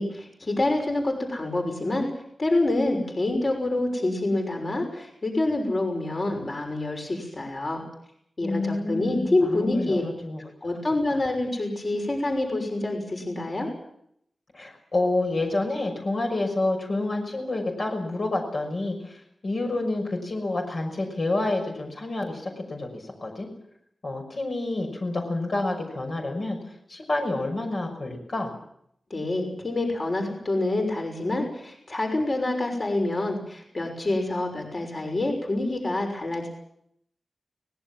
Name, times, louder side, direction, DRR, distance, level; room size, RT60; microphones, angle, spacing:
voice 1, 0.0-2.1 2.4-7.8 8.4-10.0 10.6-13.7 29.1-36.5, left 2 dB, 40° left, 2 dB, 6.2 m, -27 dB
voice 2, 8.4-10.4 11.1-11.2 14.5-23.5 24.0-26.6 26.9-28.5, left 2 dB, 55° left, 2 dB, 6.1 m, -28 dB
24.0 x 19.5 x 7.5 m, 0.72 s
wide cardioid pair, 115°, 0 cm